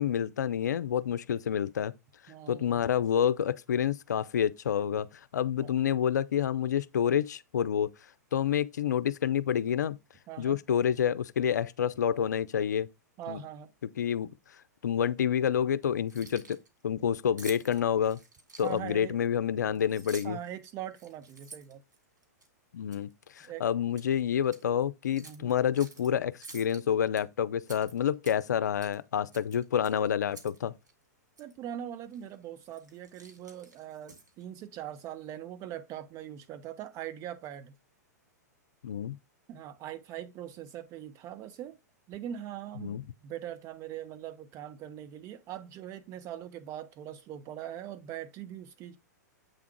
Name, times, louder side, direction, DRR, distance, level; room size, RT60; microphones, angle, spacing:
voice 1, 0.0-1.9 2.5-5.1 5.3-7.9 8.3-10.0 10.4-12.9 13.3-13.4 14.0-14.3 14.8-16.6 16.8-18.2 18.6-20.4 22.7-23.1 23.4-30.7 38.8-39.2 42.8-43.0, left 9 dB, 75° left, 0.5 m, -28 dB
voice 2, 2.3-2.8 5.6-5.8 10.3-10.6 13.2-13.7 18.6-19.2 20.2-21.8 23.4-23.6 25.2-25.5 31.4-37.7 39.5-41.8 42.1-49.0, right 11 dB, 35° right, 1.0 m, -41 dB
Keys jangling, 16.0-16.7 17.4-19.0 19.7-20.5 20.9-22.5 22.9-23.1 23.4-24.1 24.4-24.6 25.2-26.1 26.4-27.2 27.6-28.5 28.8-29.0 29.3-30.6 30.9-31.0 31.4-31.5 32.1-32.3 32.7-34.4, right 3 dB, 85° right, 2.0 m, -50 dB
7.8 x 3.6 x 4.6 m
hypercardioid pair, 110°, 10 cm